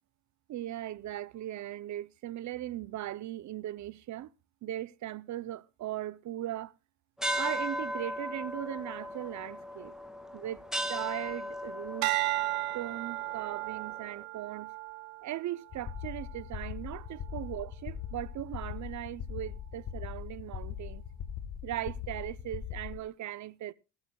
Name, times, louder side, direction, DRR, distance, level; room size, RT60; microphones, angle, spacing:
voice 1, 0.5-4.3 4.6-6.7 7.3-9.9 10.3-10.6 10.9-12.3 12.7-14.7 15.2-21.0 21.6-23.7, right 13 dB, 45° right, 0.6 m, -38 dB
sound 1, 7.2-14.1, equal, ahead, 1.5 m, -37 dB
sound 2, 12.0-16.5 17.0-17.4, right 23 dB, 85° right, 1.0 m, -35 dB
sound 3, 15.7-23.0, left 8 dB, 50° left, 1.5 m, -40 dB
21.0 x 12.5 x 2.2 m
supercardioid pair, 100°, 42 cm